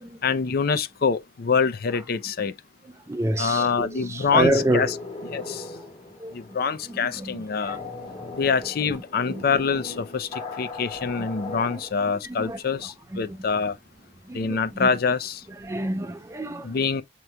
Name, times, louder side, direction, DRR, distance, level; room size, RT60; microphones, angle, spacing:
voice 1, 0.2-2.5 3.4-4.9 5.3-5.7 6.3-7.8 8.3-13.8 14.3-15.4 16.6-17.0, left 5 dB, 55° left, 0.5 m, -25 dB
voice 2, 3.1-4.9 5.7-5.8 6.2-6.3 6.9-7.7 9.3-9.4 11.2-11.3 11.6-11.7 12.2-12.6 13.1-13.2 14.3-14.9 15.6-16.8, right 1 dB, 15° right, 0.3 m, -28 dB
sound 1, 4.3-11.9, left 3 dB, 30° left, 1.4 m, -38 dB
7.8 x 3.0 x 2.2 m
head